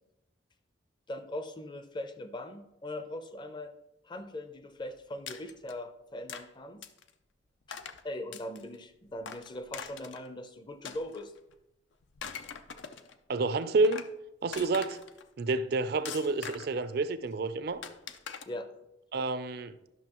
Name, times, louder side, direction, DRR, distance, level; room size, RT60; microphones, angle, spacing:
voice 1, 1.1-3.7 4.0-6.8 7.7-7.8 8.0-11.3 18.5-18.7, left 1 dB, 25° left, 9 dB, 0.6 m, -40 dB
sound 1, 5.3-5.7 6.3-6.5 6.8-7.1 7.7-8.0 8.3-8.7 9.2-10.3 10.8-11.5 12.0-13.1 13.6-14.1 14.5-15.2 16.1-16.8 17.8-18.4, left 7 dB, 75° left, 0.5 m, -42 dB
voice 2, 13.3-14.0 14.4-15.0 15.4-17.8 19.1-19.7, right 3 dB, 60° right, 13 dB, 0.5 m, -29 dB
11.0 x 6.2 x 3.0 m, 0.88 s
head